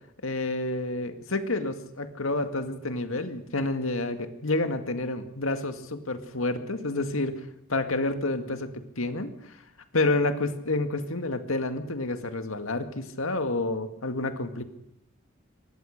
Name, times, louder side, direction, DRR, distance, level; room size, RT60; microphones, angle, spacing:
voice 1, 0.2-7.4 7.7-9.3 9.9-14.6, left 2 dB, 85° left, 8 dB, 2.1 m, -29 dB
24.0 x 19.0 x 6.7 m, 0.75 s
head